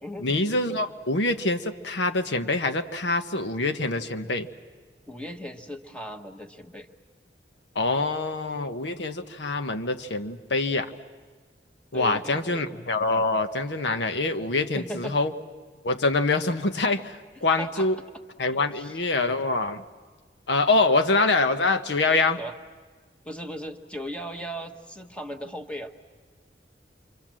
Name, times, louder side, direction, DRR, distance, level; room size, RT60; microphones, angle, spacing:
voice 1, 0.2-4.5 7.7-10.9 11.9-15.3 15.8-18.0 18.4-19.8 20.5-22.4, left 3 dB, 85° left, 8 dB, 1.0 m, -25 dB
voice 2, 5.1-6.9 11.9-12.7 14.7-15.2 17.6-17.9 18.7-19.0 22.4-22.6 23.2-25.9, equal, 5° left, 4 dB, 1.1 m, -37 dB
28.0 x 25.0 x 7.5 m, 1.4 s
head